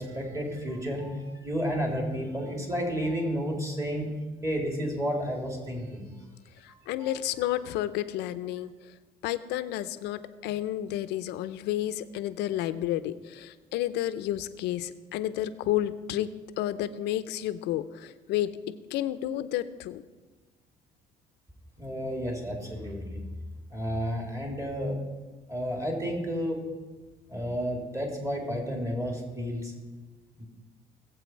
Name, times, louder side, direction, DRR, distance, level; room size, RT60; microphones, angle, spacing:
voice 1, 0.0-4.1 4.4-6.1 7.0-7.2 21.8-23.2 23.7-25.0 25.5-26.6 27.3-29.7 30.4-30.5, equal, 20° right, 1 dB, 3.2 m, -31 dB
voice 2, 6.9-8.7 9.2-16.3 16.6-18.5 18.9-20.0, left 13 dB, 85° left, 13 dB, 0.7 m, -31 dB
20.0 x 7.9 x 4.6 m, 1.3 s
cardioid pair, 110°, 17 cm